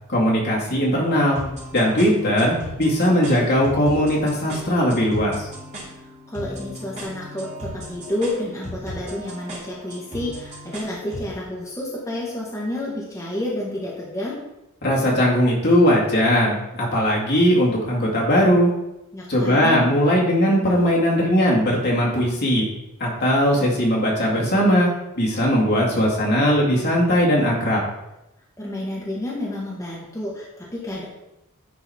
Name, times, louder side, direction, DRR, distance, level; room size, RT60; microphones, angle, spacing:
voice 1, 0.1-1.4 1.7-5.3 14.8-18.7 19.3-22.6 23.0-24.9 25.1-27.8, equal, 50° left, -4 dB, 2.2 m, -19 dB
sound 1, 1.4-11.3, equal, 35° right, 2.8 m, -37 dB
voice 2, 6.3-14.4 19.1-19.8 28.6-31.0, left 1 dB, 15° left, -5 dB, 1.4 m, -30 dB
10.0 x 4.0 x 4.3 m, 0.90 s
head